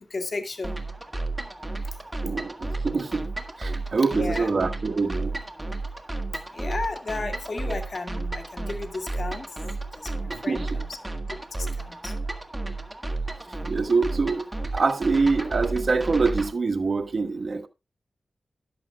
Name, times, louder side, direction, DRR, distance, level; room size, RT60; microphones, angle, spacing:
voice 1, 0.1-0.8 4.1-4.5 6.3-9.5 10.0-11.0 11.5-12.1, left 3 dB, 55° left, 2.1 m, -34 dB
sound 1, 0.6-16.5, right 2 dB, 15° right, 1.7 m, -32 dB
voice 2, 2.2-3.3 3.6-5.4 10.3-10.8 13.7-17.7, right 4 dB, 60° right, 1.2 m, -25 dB
13.0 x 11.0 x 2.3 m
wide cardioid pair, 105°, 0 cm